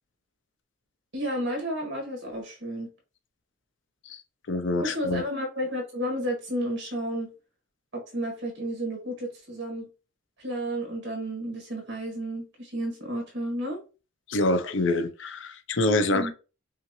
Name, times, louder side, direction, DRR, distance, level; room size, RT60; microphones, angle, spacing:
voice 1, 1.1-2.9 4.8-7.3 7.9-9.9 10.4-13.8 16.1-16.3, equal, 60° right, 1.9 m, -32 dB
voice 2, 4.5-5.2 14.3-16.3, left 2 dB, 65° left, 0.6 m, -26 dB
5.4 x 2.5 x 3.1 m
head